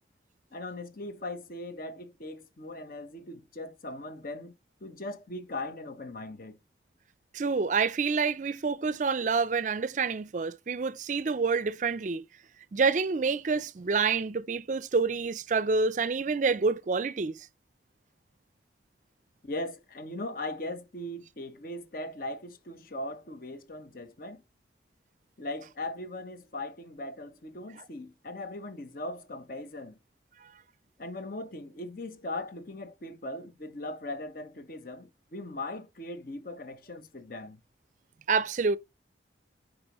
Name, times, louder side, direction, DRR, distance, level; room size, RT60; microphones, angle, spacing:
voice 1, 0.5-4.5 4.8-6.6 19.4-24.4 25.4-30.0 31.0-37.6, left 2 dB, 50° left, 1.0 m, -39 dB
voice 2, 7.3-12.2 12.7-17.5 38.3-38.8, right 4 dB, 40° right, 0.4 m, -27 dB
8.8 x 5.1 x 3.0 m
head